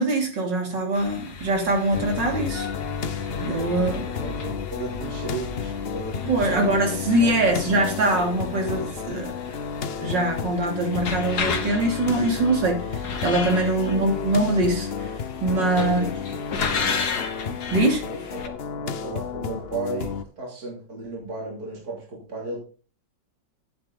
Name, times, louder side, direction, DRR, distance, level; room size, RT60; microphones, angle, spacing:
voice 1, 0.0-2.7 3.4-4.1 6.3-9.4 10.0-15.1 15.4-16.0 17.7-18.0, right 2 dB, 85° right, 3 dB, 3.5 m, -23 dB
sound 1, 0.9-18.5, left 5 dB, 65° left, 2.0 m, -35 dB
sound 2, 1.9-20.2, left 6 dB, 45° left, 0.8 m, -32 dB
voice 2, 3.2-6.8 7.2-7.3 13.7-13.9 15.4-16.1 16.5-17.0 18.0-22.6, right 2 dB, 55° right, -3 dB, 3.8 m, -35 dB
12.0 x 9.8 x 4.0 m, 0.37 s
omnidirectional pair, 1.9 m